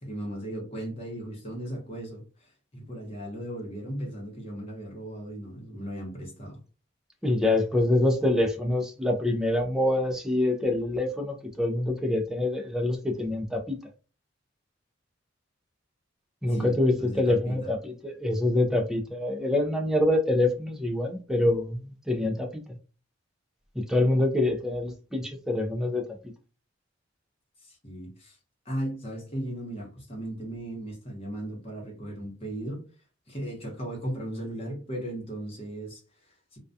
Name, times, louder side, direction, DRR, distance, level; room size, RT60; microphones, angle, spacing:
voice 1, 0.0-6.6 16.5-17.7 27.6-28.4 28.6-32.8 33.3-36.6, right 1 dB, 30° left, 0.9 m, -37 dB
voice 2, 7.2-13.8 16.4-22.6 23.8-26.0, left 1 dB, 5° right, 0.4 m, -25 dB
2.3 x 2.2 x 2.6 m
head